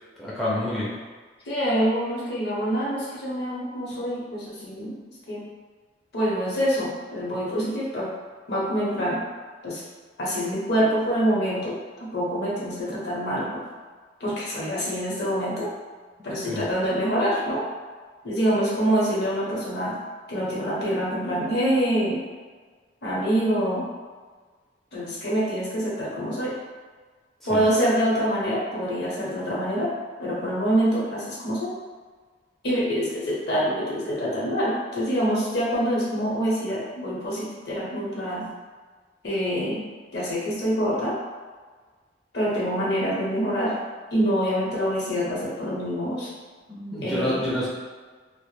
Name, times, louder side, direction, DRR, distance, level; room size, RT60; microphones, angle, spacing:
voice 1, 0.2-1.0 7.3-7.4 16.5-16.6 27.5-27.6 46.7-47.7, left 1 dB, ahead, -8 dB, 0.4 m, -28 dB
voice 2, 1.5-4.9 5.3-5.4 6.1-8.1 8.5-9.2 9.6-9.8 10.2-13.6 14.2-15.7 16.2-17.6 18.2-20.0 20.3-22.2 23.0-23.9 24.9-26.5 27.4-29.9 30.2-31.8 32.6-38.5 39.2-39.8 40.1-41.2 42.3-43.7 44.1-46.3 47.0-47.4, equal, 60° left, -6 dB, 0.8 m, -25 dB
2.1 x 2.0 x 3.1 m, 1.5 s
head